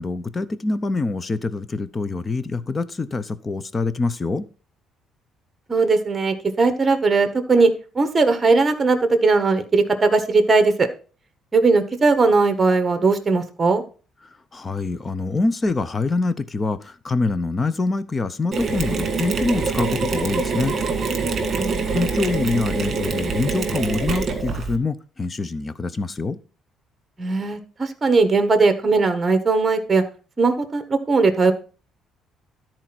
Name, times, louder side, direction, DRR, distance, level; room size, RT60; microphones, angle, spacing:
voice 1, 0.0-4.5 14.5-20.8 21.9-26.4, left 3 dB, 20° left, 15 dB, 0.7 m, -25 dB
voice 2, 5.7-7.7 7.9-10.9 11.5-13.8 21.5-21.9 27.2-30.0 30.4-30.8 31.1-31.5, right 3 dB, 20° right, 8 dB, 1.5 m, -18 dB
Mechanisms, 18.5-24.8, right 4 dB, 35° right, 1.9 m, -25 dB
13.0 x 4.4 x 6.0 m, 0.37 s
cardioid pair, 160°, 0 cm